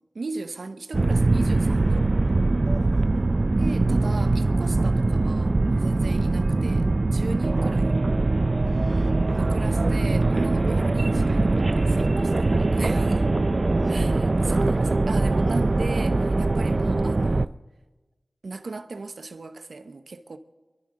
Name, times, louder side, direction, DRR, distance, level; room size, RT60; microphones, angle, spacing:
voice 1, 0.1-2.1 3.6-8.0 9.3-13.3 13.9-17.5 18.4-20.4, right 3 dB, 80° right, 0.8 m, -36 dB
sound 1, 0.9-17.5, right 2 dB, 50° right, 0.4 m, -22 dB
voice 2, 2.6-3.5 8.6-9.7 12.7-12.9 13.6-14.8, right 1 dB, ahead, 4.5 m, -45 dB
29.0 x 12.0 x 3.8 m
wide cardioid pair, 70°, 0 cm